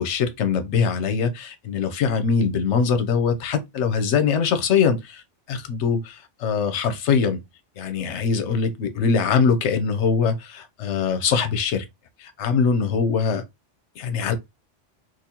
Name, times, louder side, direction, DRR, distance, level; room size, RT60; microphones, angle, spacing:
voice 1, 0.0-5.2 5.5-7.4 7.8-11.8 12.2-13.4 14.0-14.3, left 6 dB, 70° left, 1.0 m, -22 dB
3.8 x 2.5 x 2.8 m
omnidirectional pair, 1.2 m